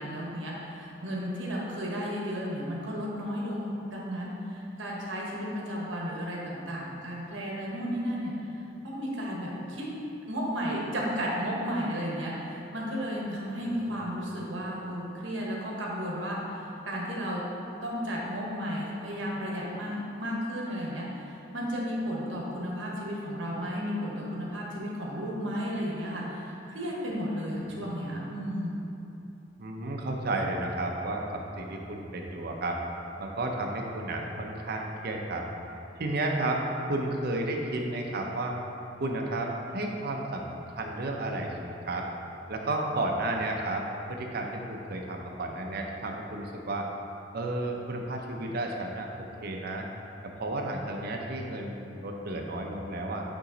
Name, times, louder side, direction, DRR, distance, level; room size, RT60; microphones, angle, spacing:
voice 1, 0.0-8.3 8.8-9.9 10.3-17.4 17.8-28.8, equal, 85° right, -3 dB, 1.2 m, -33 dB
voice 2, 13.6-14.0 27.7-27.8 29.6-32.8 33.2-35.5 36.0-36.6 36.9-38.5 39.0-41.5 41.9-42.1 42.5-46.9 47.3-49.1 49.4-49.9 50.4-53.2, right 2 dB, 55° right, 1 dB, 0.6 m, -32 dB
8.5 x 3.0 x 3.9 m, 2.9 s
head